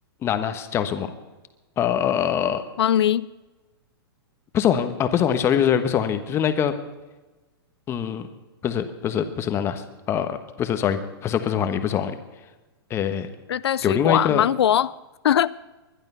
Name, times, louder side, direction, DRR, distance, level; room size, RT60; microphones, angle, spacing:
voice 1, 0.2-1.1 1.8-2.6 4.5-6.7 7.9-8.3 8.6-12.2 12.9-13.3 13.8-14.4, left 9 dB, 20° left, 9 dB, 1.2 m, -23 dB
voice 2, 2.8-3.3 13.5-14.9 15.2-15.5, left 10 dB, 85° left, 17 dB, 0.5 m, -20 dB
20.5 x 11.5 x 5.7 m, 1.2 s
hypercardioid pair, 150°, 13 cm